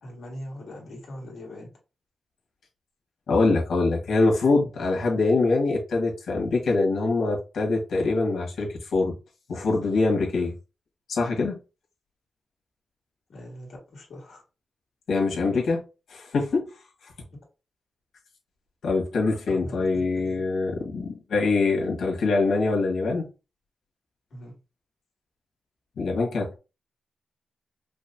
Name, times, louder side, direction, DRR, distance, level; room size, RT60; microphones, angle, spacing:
voice 1, 0.0-1.7 13.3-14.4 19.5-20.5 24.3-24.6, left 1 dB, 65° left, 1.9 m, -41 dB
voice 2, 3.3-9.1 9.5-10.5 11.1-11.6 15.1-15.8 16.1-16.6 18.8-23.3 26.0-26.6, left 3 dB, 85° left, 1.5 m, -24 dB
5.2 x 2.1 x 2.7 m
wide cardioid pair, 180°, 0 cm